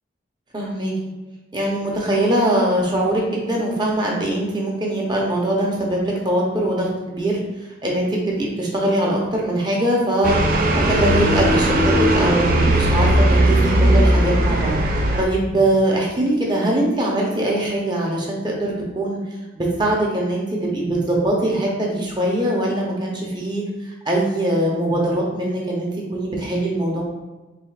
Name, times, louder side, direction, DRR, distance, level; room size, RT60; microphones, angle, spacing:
voice 1, 0.5-0.9 1.5-7.3 7.8-10.4 10.7-14.8 15.2-19.2 19.5-27.0, right 1 dB, 20° right, -2 dB, 0.8 m, -22 dB
sound 1, 10.2-15.2, right 1 dB, 45° right, 0.4 m, -17 dB
4.9 x 3.3 x 2.4 m, 1.1 s
head